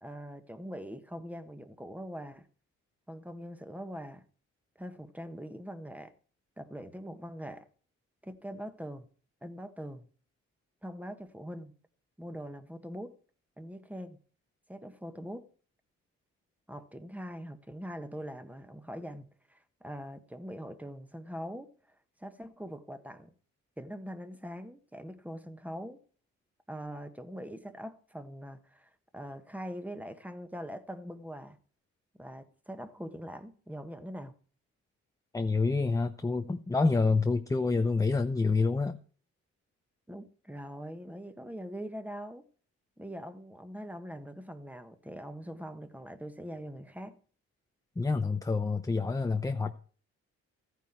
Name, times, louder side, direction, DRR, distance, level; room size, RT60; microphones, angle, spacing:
voice 1, 0.0-2.5 3.1-4.2 4.8-6.1 6.6-7.7 8.2-9.1 9.4-10.1 10.8-11.8 12.2-13.2 13.6-14.2 14.7-15.5 16.7-23.3 23.8-26.0 26.7-31.6 32.2-34.3 40.1-42.5 43.0-47.2, equal, 5° right, 1.4 m, -42 dB
voice 2, 35.3-39.0 48.0-49.8, left 3 dB, 10° left, 0.7 m, -27 dB
14.0 x 9.3 x 4.5 m
cardioid pair, 90°, 30 cm